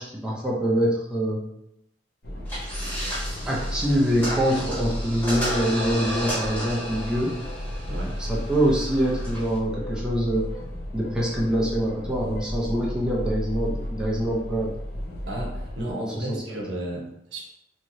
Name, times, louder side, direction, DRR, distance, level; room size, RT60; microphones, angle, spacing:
voice 1, 0.0-1.4 3.5-7.3 8.2-10.5 10.9-14.7 16.2-16.6, equal, 5° right, -5 dB, 0.6 m, -25 dB
sound 1, 2.2-15.9, equal, 60° left, 0.6 m, -34 dB
sound 2, 2.5-9.6, equal, 10° left, 1.2 m, -33 dB
voice 2, 15.3-17.4, right 1 dB, 85° right, -1 dB, 0.8 m, -33 dB
3.0 x 2.8 x 2.6 m, 0.79 s
head